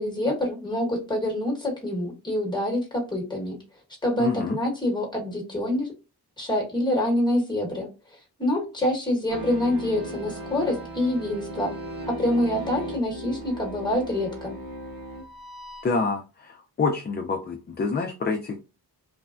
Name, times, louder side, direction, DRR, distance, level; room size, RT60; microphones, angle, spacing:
voice 1, 0.0-3.6 4.0-5.9 6.4-7.9 8.4-11.7 12.1-14.6, left 1 dB, 10° left, 0 dB, 1.1 m, -26 dB
voice 2, 4.2-4.6 15.8-18.6, left 4 dB, 25° left, 2 dB, 0.4 m, -27 dB
sound 1, 9.3-15.9, right 1 dB, 60° right, 1.3 m, -37 dB
3.2 x 2.1 x 2.4 m, 0.30 s
wide cardioid pair, 90°, 39 cm